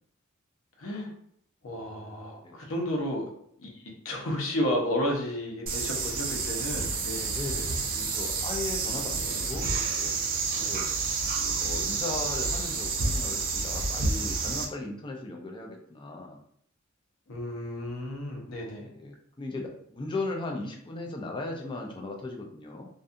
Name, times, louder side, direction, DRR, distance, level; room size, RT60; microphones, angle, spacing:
voice 1, 0.8-1.1 1.6-3.2 3.6-7.3 10.5-10.7 17.3-18.9, left 1 dB, 75° left, 0 dB, 0.7 m, -32 dB
sound 1, 5.7-14.6, right 4 dB, 45° right, 0.4 m, -29 dB
voice 2, 7.2-10.2 10.6-11.1 11.6-16.4 18.8-22.9, left 2 dB, 25° left, 1 dB, 0.4 m, -37 dB
2.6 x 2.3 x 2.5 m, 0.68 s
head